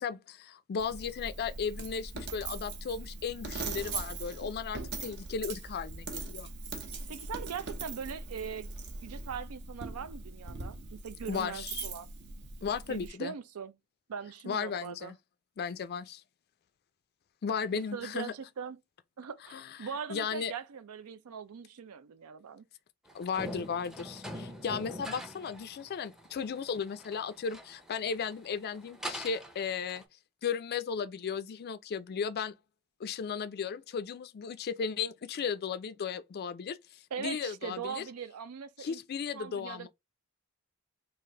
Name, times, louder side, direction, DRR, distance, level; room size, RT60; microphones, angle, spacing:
voice 1, 0.0-6.5 11.3-11.9 12.6-13.3 14.5-15.1 15.6-16.2 17.4-18.3 19.5-19.8 20.1-20.5 23.1-30.0 30.4-32.5 33.0-38.0 38.8-39.9, left 6 dB, 45° left, 0.4 m, -35 dB
Coin (dropping), 0.8-13.1, right 3 dB, 55° right, 0.8 m, -41 dB
voice 2, 7.1-8.7 9.0-12.1 12.9-13.7 14.1-15.1 17.7-18.8 19.2-22.6 37.1-39.0 39.3-39.9, right 6 dB, 80° right, 0.5 m, -41 dB
sound 1, 23.1-30.0, equal, ahead, 0.6 m, -44 dB
3.2 x 2.5 x 3.6 m
head